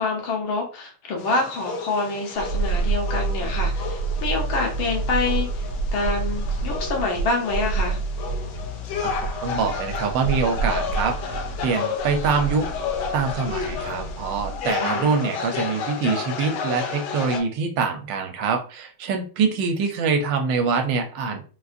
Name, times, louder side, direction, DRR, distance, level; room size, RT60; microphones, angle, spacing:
voice 1, 0.0-5.5 5.9-8.0 14.8-15.1, left 3 dB, 90° left, 0 dB, 1.8 m, -26 dB
sound 1, 1.2-17.4, left 6 dB, 70° left, 1.2 m, -32 dB
sound 2, 2.4-14.7 15.0-15.1, right 3 dB, 45° right, 0.6 m, -28 dB
voice 2, 9.4-12.7 13.1-21.4, right 5 dB, 75° right, 5 dB, 1.3 m, -24 dB
4.1 x 2.4 x 2.5 m, 0.36 s
omnidirectional pair, 2.2 m